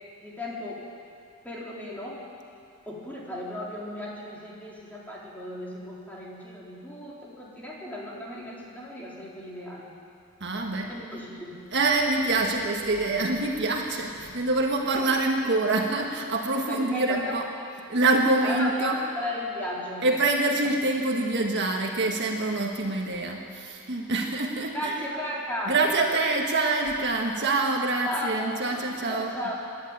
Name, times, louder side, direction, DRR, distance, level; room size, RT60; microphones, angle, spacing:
voice 1, 0.2-0.8 1.4-2.2 2.9-9.9 10.9-11.7 16.7-17.3 18.4-20.1 24.7-25.8 28.1-28.6 29.1-29.5, left 1 dB, 5° left, -5 dB, 3.9 m, -35 dB
voice 2, 10.4-10.9 11.7-17.4 17.9-19.0 20.0-24.9 25.7-29.3, right 2 dB, 50° right, 1 dB, 1.5 m, -25 dB
26.5 x 11.0 x 9.1 m, 2.5 s
head